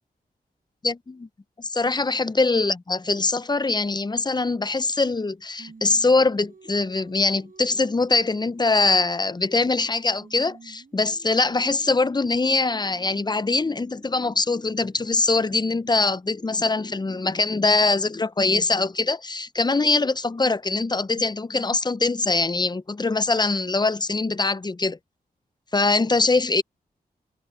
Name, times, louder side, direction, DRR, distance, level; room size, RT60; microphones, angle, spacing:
voice 1, 0.8-1.3 1.6-25.0 25.7-26.6, left 3 dB, 25° left, 0.6 m, -23 dB
Singing, 5.6-9.9 10.2-16.2, right 4 dB, 55° right, 7.6 m, -52 dB
wide cardioid pair, 75°, 17 cm